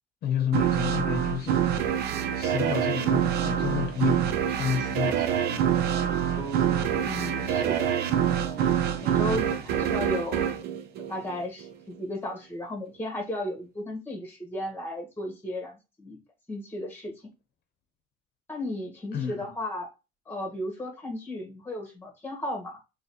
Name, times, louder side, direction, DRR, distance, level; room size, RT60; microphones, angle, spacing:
voice 1, 0.2-1.6 2.3-5.8 9.3-9.6 19.1-19.5, left 8 dB, 70° left, 0.8 m, -31 dB
sound 1, 0.5-11.7, right 9 dB, 70° right, 0.6 m, -26 dB
sound 2, 6.3-10.1, right 4 dB, 40° right, 1.4 m, -43 dB
voice 2, 7.0-8.0 8.6-8.7 9.0-10.5 11.1-16.2 16.5-17.3 18.5-19.9 20.2-22.8, left 1 dB, 10° left, 1.7 m, -35 dB
4.0 x 3.1 x 2.9 m
cardioid pair, 110°, 17 cm